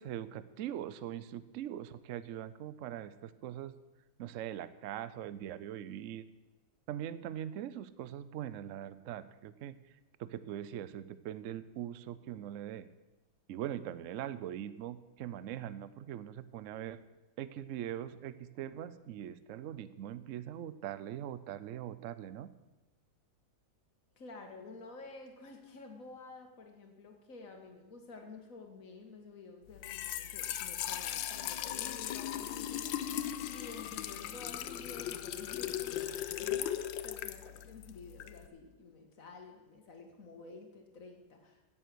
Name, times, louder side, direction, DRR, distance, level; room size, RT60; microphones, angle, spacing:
voice 1, 0.0-3.7 4.2-6.2 6.9-9.8 10.2-12.9 13.5-17.0 17.4-22.5, right 11 dB, 70° right, 14 dB, 0.7 m, -41 dB
voice 2, 24.2-33.0 33.4-41.6, left 3 dB, 50° left, 3 dB, 2.0 m, -51 dB
Trickle dribble / Fill (with liquid), 29.7-38.5, left 11 dB, 90° left, 1.4 m, -38 dB
sound 1, 31.9-37.9, right 4 dB, 10° left, 4.3 m, -64 dB
16.5 x 7.5 x 6.2 m, 1.1 s
omnidirectional pair, 2.0 m